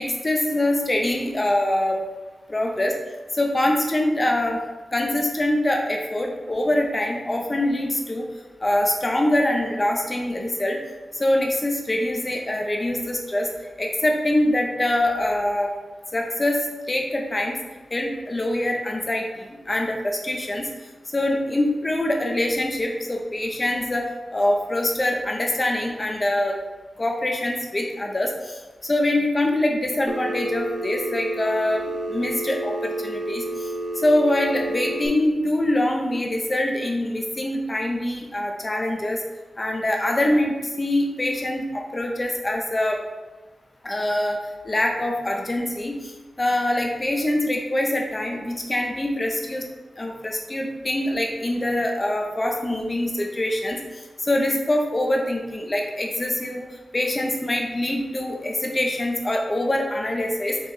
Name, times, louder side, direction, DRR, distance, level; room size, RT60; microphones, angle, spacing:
voice 1, 0.0-2.0 2.5-2.9 3.3-4.6 4.9-8.3 8.6-10.8 11.1-13.5 13.8-15.7 16.1-17.6 17.9-20.7 21.1-24.1 24.3-26.6 27.0-31.8 32.1-33.7 34.0-39.2 39.6-43.0 43.8-44.4 44.6-46.1 46.4-49.7 50.0-53.8 54.2-56.7 56.9-60.6, left 1 dB, 25° left, 1 dB, 0.6 m, -24 dB
Telephone, 30.1-35.1, right 2 dB, 20° right, 0.5 m, -30 dB
4.3 x 3.0 x 3.5 m, 1.2 s
wide cardioid pair, 120°, 0 cm